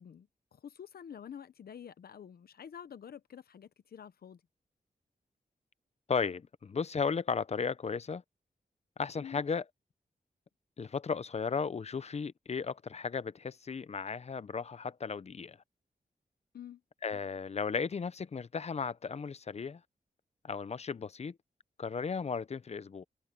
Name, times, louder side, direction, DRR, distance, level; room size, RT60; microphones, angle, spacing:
voice 1, 0.0-4.4 9.2-9.4 16.5-16.8, left 8 dB, 85° left, 0.8 m, -48 dB
voice 2, 6.1-8.2 9.0-9.6 10.8-15.6 17.0-19.8 20.4-21.4 21.8-23.0, left 5 dB, 45° left, 0.6 m, -35 dB
wide cardioid pair, 100°, 16 cm